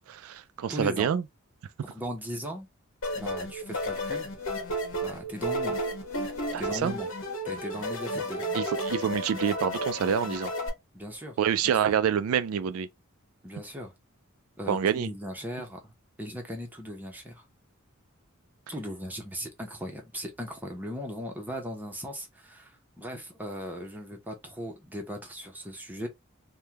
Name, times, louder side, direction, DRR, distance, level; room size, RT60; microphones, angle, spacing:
voice 1, 0.1-1.2 6.5-6.9 8.5-10.5 11.4-12.9 14.7-15.1, right 8 dB, 90° right, 0.3 m, -27 dB
voice 2, 0.7-1.1 1.9-2.7 3.1-4.3 5.0-5.8 6.6-7.1 7.4-8.5 10.9-11.4 11.6-11.9 13.4-13.9 14.6-15.9 16.2-17.5 18.7-26.1, equal, 10° right, 0.7 m, -38 dB
sound 1, 3.0-10.7, equal, 65° left, 1.1 m, -32 dB
3.5 x 2.2 x 2.8 m
head